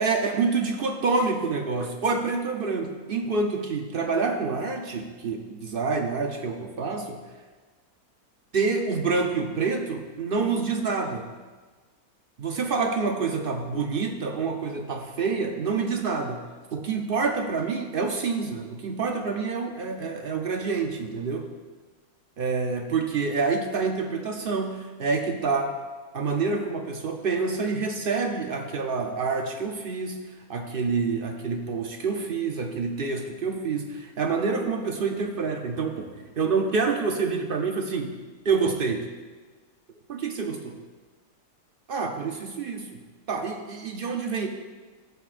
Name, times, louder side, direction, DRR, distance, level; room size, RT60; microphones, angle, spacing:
voice 1, 0.0-7.2 8.5-11.3 12.4-16.4 16.7-21.5 22.4-25.7 26.1-38.1 38.4-39.1 40.1-40.8 41.9-42.9 43.3-44.5, right 4 dB, 55° right, 4 dB, 0.6 m, -27 dB
13.5 x 7.3 x 2.5 m, 1.4 s
omnidirectional pair, 1.6 m